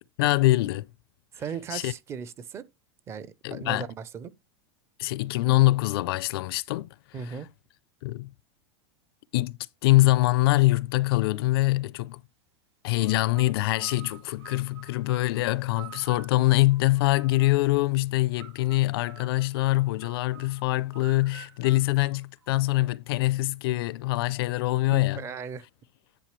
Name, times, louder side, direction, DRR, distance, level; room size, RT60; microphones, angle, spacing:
voice 1, 0.2-0.9 1.7-1.9 3.4-3.9 5.0-7.4 8.0-8.3 9.3-12.2 12.8-25.2, left 18 dB, 60° left, 0.5 m, -24 dB
voice 2, 1.3-2.7 3.1-4.3 7.1-7.5 24.9-25.6, right 6 dB, 20° right, 0.5 m, -37 dB
sound 1, 13.0-17.7 18.3-22.8, right 11 dB, 85° right, 4.4 m, -50 dB
10.5 x 5.6 x 3.1 m
supercardioid pair, 165°, 15 cm